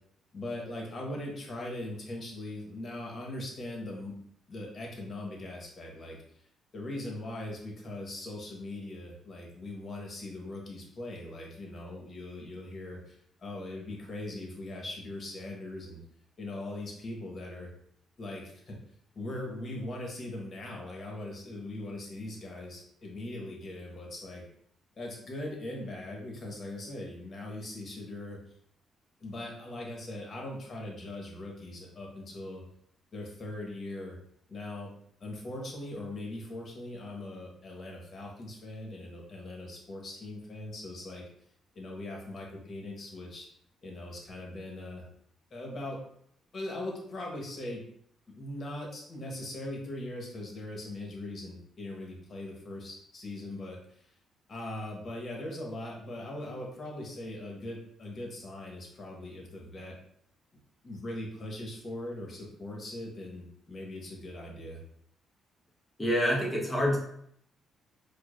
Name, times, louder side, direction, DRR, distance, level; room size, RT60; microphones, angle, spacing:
voice 1, 0.3-4.1 4.5-6.2 6.7-16.0 16.4-17.7 18.2-18.8 19.1-24.4 25.0-28.4 29.2-32.6 33.1-34.2 34.5-41.2 41.7-43.5 43.8-45.0 45.5-46.0 46.5-47.8 48.3-54.1 54.5-60.0 60.8-64.8, left 1 dB, 45° left, -1 dB, 1.1 m, -40 dB
voice 2, 66.0-67.0, equal, 15° left, -2 dB, 1.1 m, -26 dB
4.7 x 2.3 x 2.5 m, 0.68 s
cardioid pair, 90°, 0 cm